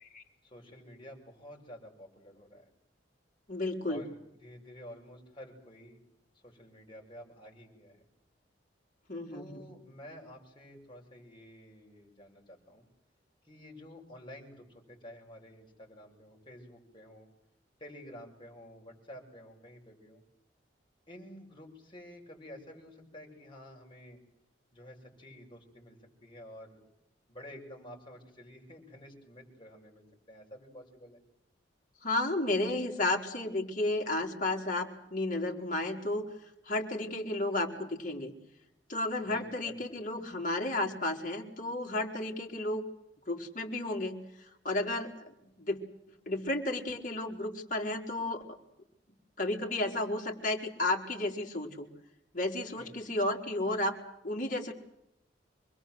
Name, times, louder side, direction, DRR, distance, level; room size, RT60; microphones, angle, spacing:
voice 1, 0.4-2.7 3.9-6.0 6.3-8.1 9.3-12.9 13.4-17.3 17.8-20.2 21.1-24.2 24.7-26.8 27.3-31.2 39.2-40.0 52.8-53.0, equal, 30° left, 0 dB, 7.0 m, -50 dB
voice 2, 3.5-4.0 9.1-9.6 32.0-36.3 36.7-38.3 38.9-42.8 43.3-44.2 44.6-45.1 45.4-45.8 46.3-48.6 49.4-51.9 52.3-54.0 54.2-54.7, left 2 dB, 45° left, 3 dB, 4.3 m, -32 dB
26.5 x 22.0 x 7.9 m, 0.84 s
head